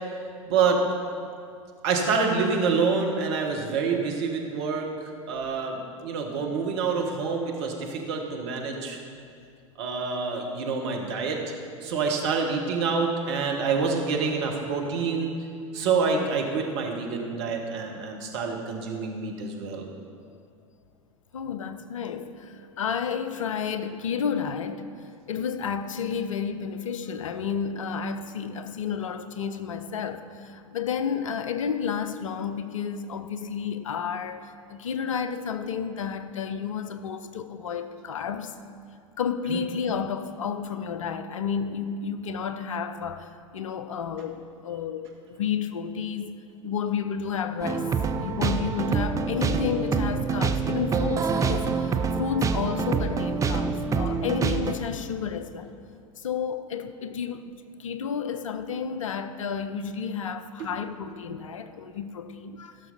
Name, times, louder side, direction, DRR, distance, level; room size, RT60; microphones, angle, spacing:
voice 1, 0.5-0.8 1.8-9.0 9.8-11.4 11.8-15.3 15.7-19.9 39.5-39.6 60.6-60.7, right 5 dB, 55° right, 1.5 m, -27 dB
voice 2, 21.3-24.9 25.3-38.6 39.2-46.3 46.6-47.9 48.2-55.7 56.2-57.5 57.8-62.8, left 7 dB, 70° left, 0.6 m, -31 dB
sound 1, 47.6-54.7, right 5 dB, 20° right, 0.6 m, -26 dB
15.5 x 6.6 x 4.3 m
figure-of-eight pair, 85°, 17 cm